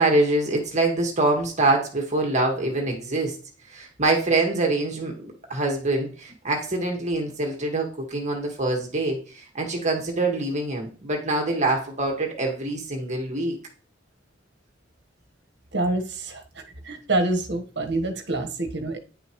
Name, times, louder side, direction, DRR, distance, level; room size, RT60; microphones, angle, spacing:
voice 1, 0.0-3.4 3.7-13.6, right 2 dB, 40° right, 1 dB, 1.9 m, -25 dB
voice 2, 15.7-19.0, right 2 dB, 65° right, 6 dB, 1.4 m, -27 dB
10.0 x 6.7 x 3.2 m, 0.39 s
head